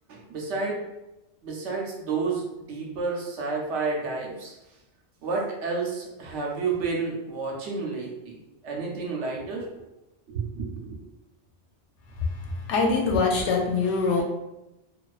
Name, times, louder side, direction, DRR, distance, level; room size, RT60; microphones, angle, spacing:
voice 1, 0.1-0.8 1.4-4.6 5.2-8.4 8.6-9.6 10.3-11.0, right 4 dB, 90° right, -1 dB, 0.9 m, -30 dB
voice 2, 12.2-14.2, left 4 dB, 90° left, 0 dB, 0.9 m, -24 dB
2.3 x 2.3 x 2.3 m, 0.94 s
omnidirectional pair, 1.2 m